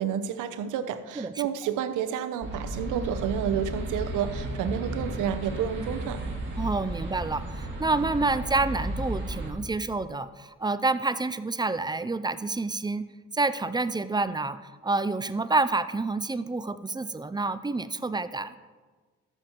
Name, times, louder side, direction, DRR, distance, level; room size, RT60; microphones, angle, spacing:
voice 1, 0.0-6.2, right 8 dB, 85° right, 9 dB, 0.9 m, -30 dB
sound 1, 2.4-9.5, right 1 dB, 40° right, 3.6 m, -34 dB
voice 2, 6.6-13.1 13.3-18.5, right 3 dB, 15° right, 13 dB, 0.5 m, -28 dB
13.5 x 7.3 x 4.6 m, 1.4 s
cardioid pair, 90°, 30 cm